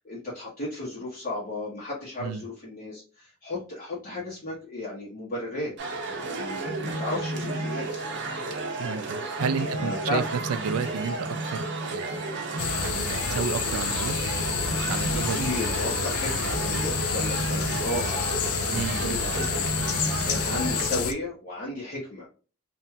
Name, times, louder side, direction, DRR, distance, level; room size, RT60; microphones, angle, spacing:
voice 1, 0.0-5.7 6.0-8.0 9.4-10.2 15.1-19.7 20.0-22.3, left 1 dB, 40° left, 1.0 m, -34 dB
sound 1, 5.8-20.9, right 2 dB, 55° right, 0.7 m, -32 dB
voice 2, 8.8-12.2 12.8-14.1 14.9-15.5 18.7-19.2, right 6 dB, 85° right, 0.4 m, -32 dB
sound 2, 12.6-21.1, left 6 dB, 85° left, 0.5 m, -29 dB
2.9 x 2.6 x 2.2 m
head